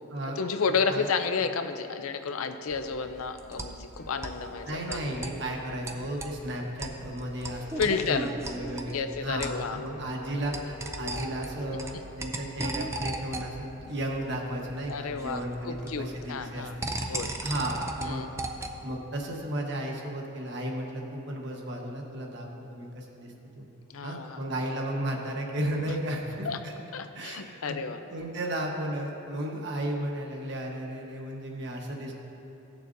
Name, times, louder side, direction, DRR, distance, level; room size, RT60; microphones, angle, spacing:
voice 1, 0.4-5.0 7.8-8.3 8.9-9.8 14.9-15.4 15.7-17.3 18.0-18.3 23.9-24.4 26.4-26.6 26.9-28.0, left 5 dB, 90° left, 8 dB, 0.5 m, -31 dB
sound 1, 2.7-18.9, right 2 dB, 15° right, 0.4 m, -39 dB
sound 2, 4.0-17.3, left 2 dB, 40° left, 1.1 m, -49 dB
voice 2, 4.7-18.3 18.8-23.6 24.0-26.7 27.1-27.8 28.1-32.1, right 1 dB, 55° right, 0 dB, 1.2 m, -34 dB
16.5 x 6.7 x 2.6 m, 3.0 s
head